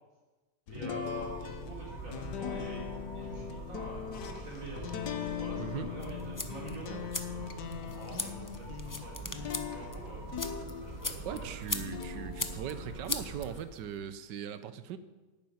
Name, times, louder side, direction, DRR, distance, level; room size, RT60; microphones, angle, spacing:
sound 1, 0.7-11.3 11.7-14.0, left 8 dB, 70° left, 1.6 m, -41 dB
voice 1, 0.7-2.9 3.1-10.3 10.8-11.7, right 1 dB, 50° right, -3 dB, 4.4 m, -45 dB
sound 2, 1.0-13.6, right 2 dB, 25° right, 1.4 m, -45 dB
voice 2, 5.6-5.9 11.2-15.0, right 9 dB, 80° right, 12 dB, 1.4 m, -40 dB
sound 3, 6.0-14.0, left 2 dB, 25° left, 0.4 m, -41 dB
11.5 x 8.7 x 9.5 m, 1.2 s
omnidirectional pair, 1.9 m